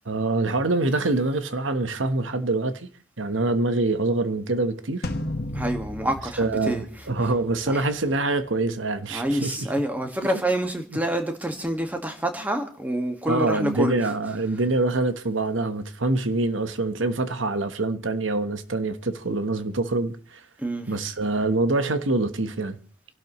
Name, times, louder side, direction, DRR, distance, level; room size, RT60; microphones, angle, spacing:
voice 1, 0.0-2.9 3.2-5.1 6.4-9.6 13.3-20.4 20.9-22.8, right 2 dB, 90° right, 1.2 m, -25 dB
sound 1, 5.0-7.6, left 1 dB, 55° left, 1.4 m, -33 dB
voice 2, 5.5-7.3 7.7-7.9 9.1-14.5 20.6-21.0, right 1 dB, 10° right, 1.8 m, -28 dB
28.0 x 12.0 x 3.1 m
head